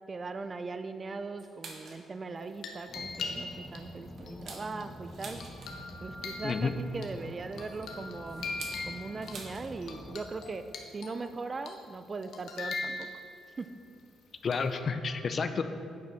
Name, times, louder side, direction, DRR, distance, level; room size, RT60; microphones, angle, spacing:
voice 1, 0.1-5.4 6.0-8.5 8.8-10.6 10.9-13.1 13.6-13.7, right 3 dB, 35° right, 10 dB, 0.5 m, -39 dB
sound 1, 1.4-2.1 2.5-2.6 3.0-3.2 3.7-6.0 7.2-9.7 10.0-10.1 10.4-10.7 11.7-11.8 12.7-12.8 13.6-13.8 14.1-14.2 14.4-14.6, right 4 dB, 55° right, 1.3 m, -48 dB
sound 2, 2.4-3.8 4.3-7.1 7.5-9.4 9.8-11.3 11.7-11.9 12.2-13.5 14.5-14.8, left 3 dB, 75° left, 1.1 m, -41 dB
sound 3, 2.9-10.2, equal, 5° left, 1.0 m, -47 dB
voice 2, 6.4-6.8 14.4-15.6, left 5 dB, 45° left, 9 dB, 0.5 m, -30 dB
9.6 x 4.8 x 5.6 m, 2.4 s
cardioid pair, 90°, 0 cm